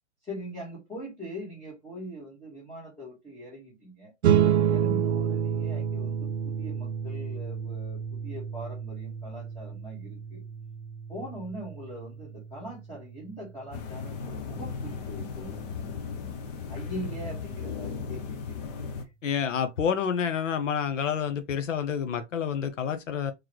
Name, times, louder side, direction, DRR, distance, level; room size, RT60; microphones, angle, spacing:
voice 1, 0.2-4.1 4.7-10.4 11.1-15.8 16.7-19.1, equal, 10° left, 1.5 m, -42 dB
sound 1, 4.2-15.0, right 9 dB, 60° right, 0.6 m, -30 dB
sound 2, 13.7-19.0, left 5 dB, 35° left, 0.7 m, -36 dB
voice 2, 19.2-23.3, left 7 dB, 80° left, 0.8 m, -28 dB
3.8 x 3.2 x 3.0 m
hypercardioid pair, 150°, 37 cm